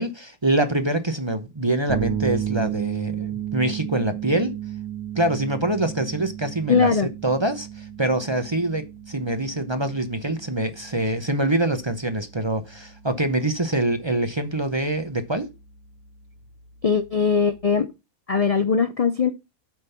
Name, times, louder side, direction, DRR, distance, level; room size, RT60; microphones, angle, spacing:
voice 1, 0.0-4.5 5.2-15.5, right 1 dB, 25° right, 0.7 m, -25 dB
sound 1, 1.9-17.8, right 10 dB, 70° right, 1.6 m, -34 dB
voice 2, 6.7-7.1 16.8-17.9 18.3-19.3, left 5 dB, 55° left, 0.4 m, -20 dB
7.7 x 5.3 x 5.7 m
omnidirectional pair, 1.5 m